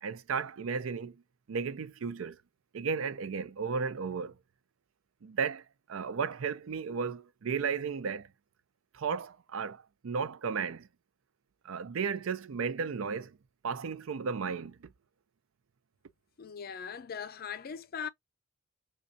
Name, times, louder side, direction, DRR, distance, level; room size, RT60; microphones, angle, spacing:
voice 1, 0.0-1.2 1.5-2.4 2.7-4.3 5.2-5.6 5.9-8.3 8.9-10.9 11.6-13.4 13.6-14.9, right 5 dB, 85° right, 0.5 m, -34 dB
voice 2, 16.4-18.1, left 7 dB, 50° left, 0.4 m, -40 dB
5.1 x 2.3 x 2.6 m
head